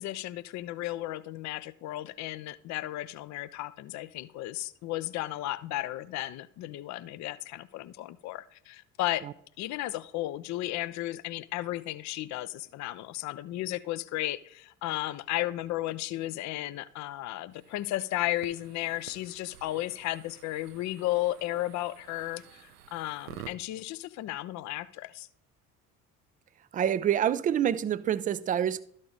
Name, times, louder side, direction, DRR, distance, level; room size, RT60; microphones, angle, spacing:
voice 1, 0.0-9.3 9.6-25.3, left 16 dB, 40° left, 0.5 m, -34 dB
sound 1, 17.5-23.5, right 11 dB, 80° right, 0.6 m, -50 dB
voice 2, 26.7-28.8, right 9 dB, 20° right, 0.4 m, -27 dB
12.5 x 4.3 x 4.8 m
figure-of-eight pair, 50°, 46 cm